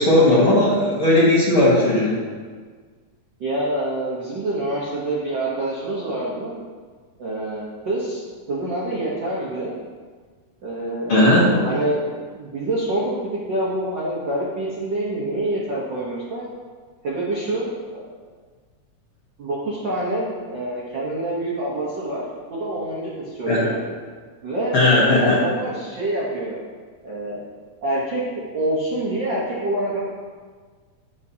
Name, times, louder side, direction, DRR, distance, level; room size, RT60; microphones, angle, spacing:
voice 1, 0.0-2.2 11.1-11.6 23.5-23.6 24.7-25.4, left 1 dB, 55° left, -7 dB, 1.7 m, -16 dB
voice 2, 3.4-6.6 7.2-8.2 8.5-9.8 10.6-11.3 11.6-16.4 17.0-18.1 19.4-22.2 22.5-23.8 24.4-24.8 25.1-26.6 27.0-27.4 27.8-28.2 28.5-30.0, right 1 dB, 70° right, -6 dB, 1.0 m, -26 dB
9.9 x 5.5 x 2.8 m, 1.5 s
omnidirectional pair, 3.7 m